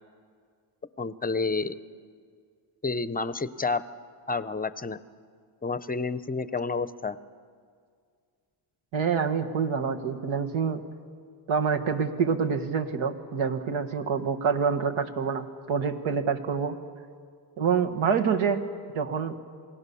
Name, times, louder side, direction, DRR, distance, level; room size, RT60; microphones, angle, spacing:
voice 1, 1.0-1.8 2.8-3.8 4.3-5.0 5.6-7.2, left 4 dB, 20° left, 15 dB, 0.6 m, -29 dB
voice 2, 8.9-10.8 11.5-16.8 17.6-18.6 18.9-19.4, right 6 dB, 80° right, 5 dB, 1.7 m, -26 dB
28.0 x 18.0 x 7.0 m, 2.1 s
cardioid pair, 100°, 48 cm